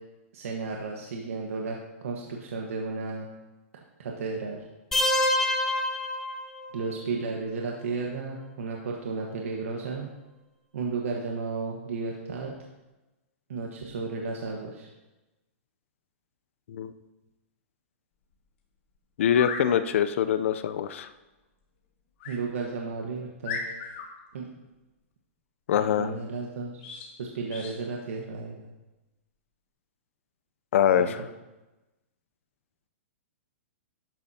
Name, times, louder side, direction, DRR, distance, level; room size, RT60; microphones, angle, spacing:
voice 1, 0.3-3.3 4.0-4.6 6.7-10.1 10.7-12.5 13.5-14.9 22.3-23.6 24.3-24.5 25.7-26.8 27.2-28.7 30.9-31.1, right 4 dB, 80° right, 0 dB, 1.4 m, -33 dB
sound 1, 4.9-6.9, left 1 dB, 5° left, 0.9 m, -26 dB
sound 2, 18.3-18.4 19.2-19.7 22.2-22.4 22.9-23.0 23.4-24.1 26.8-27.1 27.5-27.8, left 5 dB, 50° left, 2.6 m, -36 dB
voice 2, 19.2-21.1 25.7-26.1 30.7-31.2, left 9 dB, 65° left, 11 dB, 0.6 m, -24 dB
12.5 x 10.5 x 2.9 m, 1.1 s
hypercardioid pair, 150°, 7 cm